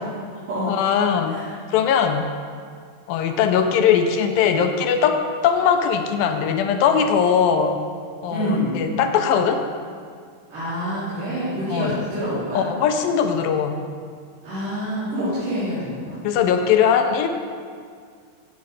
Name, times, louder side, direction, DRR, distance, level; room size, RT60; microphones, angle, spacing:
voice 1, 0.7-1.4 1.7-2.2 3.1-7.8 8.2-9.6 11.7-12.0 12.5-13.8 16.2-17.3, left 7 dB, 80° left, 6 dB, 2.3 m, -20 dB
voice 2, 8.3-8.8 10.5-12.6 14.4-16.2, equal, 60° right, -14 dB, 4.5 m, -26 dB
14.0 x 8.2 x 3.2 m, 2.1 s
omnidirectional pair, 4.3 m